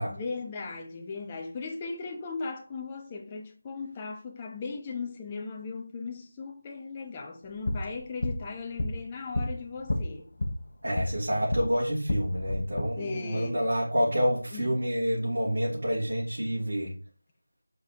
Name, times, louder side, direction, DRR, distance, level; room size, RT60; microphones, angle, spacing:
voice 1, 0.1-10.3 12.9-13.6 14.5-14.7, left 4 dB, 15° left, 0.7 m, -37 dB
sound 1, 7.4-11.7 12.0-12.8, left 1 dB, 50° left, 1.1 m, -32 dB
voice 2, 10.8-16.9, equal, 70° right, 2.8 m, -28 dB
7.2 x 5.2 x 3.0 m
figure-of-eight pair, 175°, 0 cm